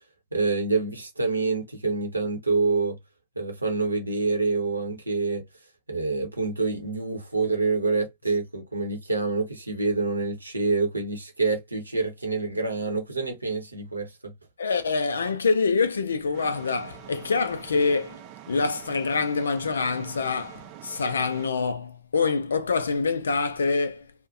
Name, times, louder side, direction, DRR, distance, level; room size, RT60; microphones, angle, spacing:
voice 1, 0.3-3.0 3.4-5.4 5.9-14.3, right 3 dB, 85° right, 0.7 m, -27 dB
voice 2, 14.6-18.2 18.5-24.1, left 4 dB, 70° left, 0.4 m, -25 dB
sound 1, 16.3-21.5, right 12 dB, 45° right, 0.4 m, -45 dB
2.5 x 2.1 x 2.4 m
figure-of-eight pair, 90°, 0 cm